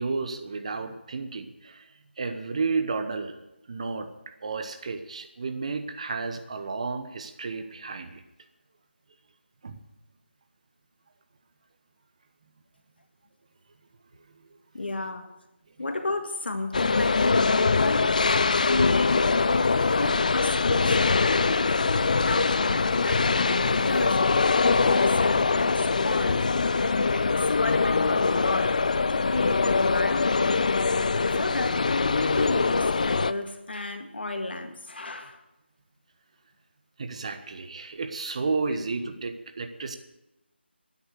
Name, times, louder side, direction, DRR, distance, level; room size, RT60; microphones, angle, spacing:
voice 1, 0.0-1.8 2.2-3.4 3.7-4.1 4.4-8.2 9.6-9.8 14.4-14.5 37.0-40.0, right 4 dB, 35° right, 1.0 m, -32 dB
voice 2, 14.7-15.3 15.8-18.2 18.6-21.8 22.1-26.4 26.8-27.3 27.6-28.8 29.1-30.6 31.2-31.9 32.2-35.4 38.7-38.8, left 2 dB, 60° left, 2.0 m, -32 dB
sound 1, 16.7-33.3, left 4 dB, 40° left, 0.4 m, -23 dB
12.5 x 9.9 x 8.1 m
figure-of-eight pair, 165°, 6 cm